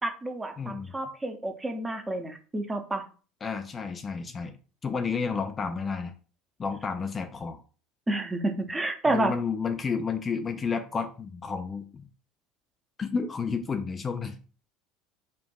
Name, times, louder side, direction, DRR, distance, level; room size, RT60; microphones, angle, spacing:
voice 1, 0.0-3.0 8.1-9.3, right 2 dB, 15° right, 5 dB, 0.8 m, -29 dB
voice 2, 0.6-0.9 3.4-4.6 4.8-6.1 6.6-7.6 9.1-12.1 13.0-14.4, left 5 dB, 30° left, 6 dB, 0.5 m, -31 dB
5.0 x 2.4 x 2.3 m, 0.37 s
figure-of-eight pair, 65°, 0 cm